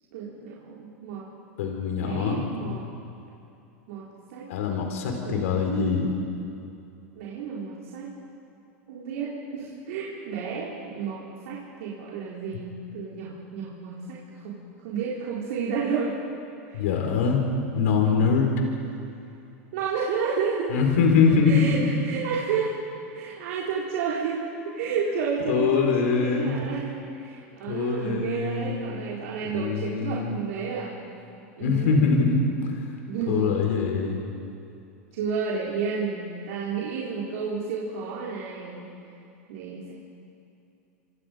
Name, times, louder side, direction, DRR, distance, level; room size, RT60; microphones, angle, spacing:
voice 1, 0.1-1.2 2.0-2.8 3.9-4.0 4.3-4.5 5.3-5.6 7.1-8.1 8.9-16.2 16.7-16.8 19.7-20.8 21.4-22.7 23.1-31.0 31.6-32.0 33.1-33.6 35.1-38.9 39.5-39.9, right 5 dB, 70° right, -5 dB, 4.2 m, -31 dB
voice 2, 1.6-2.8 4.5-6.1 16.7-17.4 17.7-18.5 20.7-22.0 25.5-26.6 27.7-28.8 29.4-30.4 31.6-32.8 33.3-34.2, left 5 dB, 75° left, 2 dB, 4.8 m, -23 dB
27.0 x 26.0 x 5.3 m, 2.6 s
hypercardioid pair, 115°, 8 cm